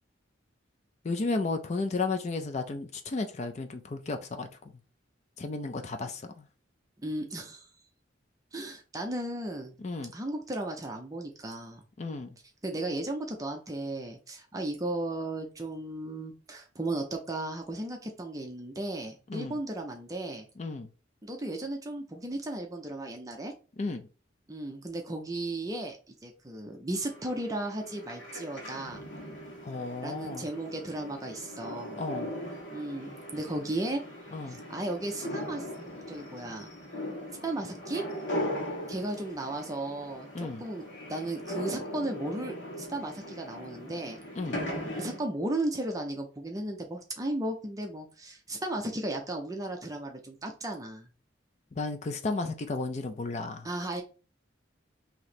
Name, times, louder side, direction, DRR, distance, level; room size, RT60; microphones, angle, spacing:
voice 1, 1.0-4.5 5.4-6.4 9.8-10.1 12.0-12.3 19.3-19.6 20.6-20.9 23.8-24.1 29.6-30.5 32.0-32.3 34.3-34.6 40.3-40.6 44.4-44.6 51.7-53.7, left 3 dB, 35° left, 0.4 m, -33 dB
voice 2, 7.0-7.7 8.5-9.7 10.1-11.8 12.6-20.5 21.2-23.5 24.5-29.0 30.0-32.0 32.7-34.0 34.4-35.7 36.1-36.7 37.4-38.0 38.9-44.2 45.0-51.1 53.6-54.0, right 1 dB, 20° right, 0.5 m, -35 dB
sound 1, 27.0-45.2, equal, 75° left, 1.4 m, -39 dB
3.1 x 2.8 x 4.1 m
head